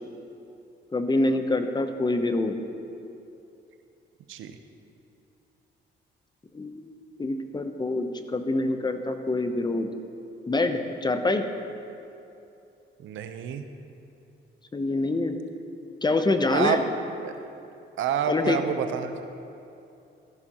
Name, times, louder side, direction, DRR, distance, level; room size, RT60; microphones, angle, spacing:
voice 1, 0.9-2.6 6.5-6.9 7.2-9.9 10.5-11.4 14.7-15.4 16.0-16.8 18.3-18.6, left 2 dB, 20° left, 7 dB, 0.7 m, -25 dB
voice 2, 13.0-13.7 16.5-16.8 17.2-17.3 18.0-19.2, right 8 dB, 75° right, 8 dB, 0.7 m, -28 dB
13.5 x 10.5 x 2.9 m, 2.8 s
cardioid pair, 90°, 20 cm